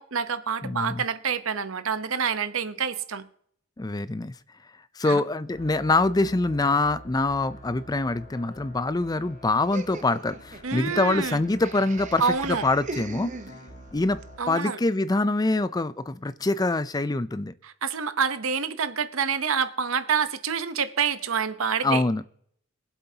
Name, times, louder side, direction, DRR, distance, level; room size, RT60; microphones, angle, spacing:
voice 1, 0.0-3.3 5.1-5.2 10.6-11.4 12.2-12.6 14.4-14.8 17.6-22.0, right 6 dB, 70° right, 0.9 m, -27 dB
voice 2, 0.6-1.0 3.8-4.3 5.0-13.3 13.9-14.2 14.5-17.5 21.8-22.2, left 2 dB, 20° left, 0.4 m, -25 dB
sound 1, 5.5-14.4, equal, 40° left, 3.0 m, -47 dB
Laughter, 9.7-14.0, right 3 dB, 35° right, 0.9 m, -40 dB
23.0 x 7.9 x 2.8 m
head